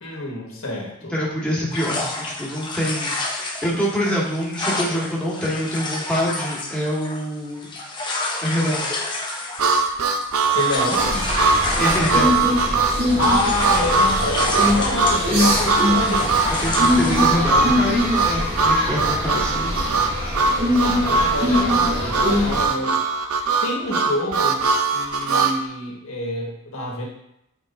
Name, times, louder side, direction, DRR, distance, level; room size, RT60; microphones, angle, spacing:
voice 1, 0.0-1.1 10.5-11.2 13.2-16.4 20.7-23.0 23.6-24.7 24.9-27.1, left 1 dB, 70° left, -1 dB, 1.5 m, -27 dB
voice 2, 1.1-7.8 8.4-8.8 11.8-12.3 16.5-19.9, equal, 5° left, -6 dB, 1.5 m, -25 dB
sound 1, 1.7-12.8 13.1-17.4, left 2 dB, 20° left, 0.7 m, -29 dB
Harmonica, 9.6-25.6, right 4 dB, 80° right, 0.6 m, -21 dB
sound 2, 11.0-22.6, left 1 dB, 45° right, 1.8 m, -23 dB
8.5 x 4.6 x 2.6 m, 0.78 s
head